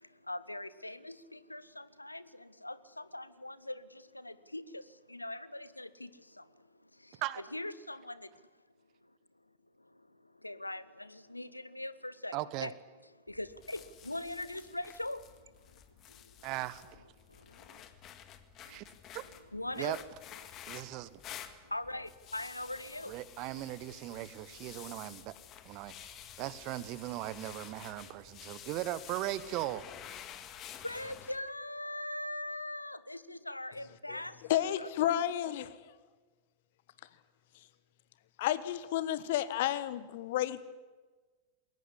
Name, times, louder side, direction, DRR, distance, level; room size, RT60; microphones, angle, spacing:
voice 1, 0.0-7.2 7.5-8.4 9.8-12.7 13.3-15.5 16.1-16.3 17.3-17.8 18.7-18.8 19.5-20.0 21.6-23.2 30.8-34.9, left 1 dB, 85° left, 0.8 m, -42 dB
voice 2, 12.3-12.7 16.4-16.9 18.6-18.8 19.1-19.2 19.8-20.0 20.7-21.2 23.1-25.3 25.6-29.9, right 16 dB, 40° right, 1.1 m, -38 dB
sound 1, 13.3-31.4, left 10 dB, 35° left, 1.8 m, -51 dB
voice 3, 34.5-35.9 38.4-40.6, left 12 dB, 55° left, 1.2 m, -31 dB
21.5 x 18.5 x 10.0 m
figure-of-eight pair, 90°, 0 cm